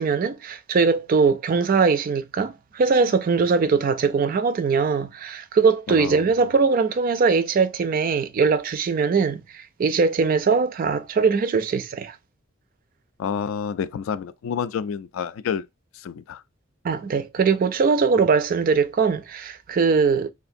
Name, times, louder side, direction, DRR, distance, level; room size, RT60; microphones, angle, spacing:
voice 1, 0.0-12.2 16.8-20.3, right 5 dB, 45° right, 0.3 m, -21 dB
voice 2, 5.9-6.3 13.2-15.7 15.9-16.4, left 7 dB, 75° left, 0.3 m, -29 dB
5.6 x 2.5 x 2.6 m
head